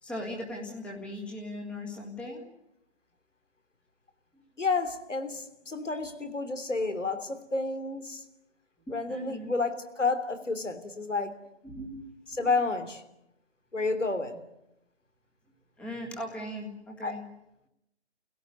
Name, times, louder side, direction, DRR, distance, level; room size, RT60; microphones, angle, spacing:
voice 1, 0.0-2.5 4.3-4.4 5.9-6.1 9.1-9.5 11.6-12.1 15.8-17.2, left 1 dB, 5° left, 0 dB, 1.7 m, -39 dB
voice 2, 4.6-8.2 8.9-11.4 12.3-13.0 13.7-14.4 17.0-17.2, left 3 dB, 85° left, 8 dB, 3.5 m, -30 dB
30.0 x 17.0 x 9.5 m, 0.87 s
figure-of-eight pair, 160°, 36 cm